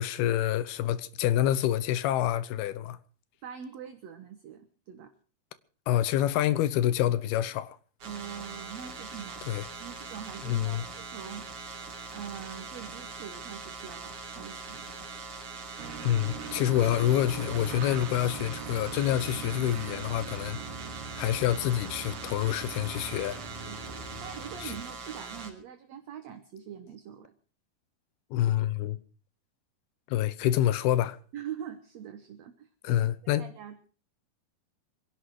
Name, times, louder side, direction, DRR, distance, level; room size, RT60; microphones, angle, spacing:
voice 1, 0.0-3.0 5.9-7.8 9.5-9.6 10.4-10.8 16.0-20.6 21.2-23.4 24.6-24.8 28.3-29.0 30.1-31.2 32.8-33.4, left 12 dB, 85° left, 2.9 m, -27 dB
voice 2, 3.4-5.1 8.0-11.5 12.1-14.9 23.7-27.3 31.3-33.9, right 9 dB, 65° right, 1.8 m, -43 dB
sound 1, 8.0-25.5, right 4 dB, 40° right, 4.0 m, -42 dB
sound 2, 15.8-24.8, right 5 dB, 90° right, 3.6 m, -41 dB
25.0 x 11.5 x 4.8 m
omnidirectional pair, 4.4 m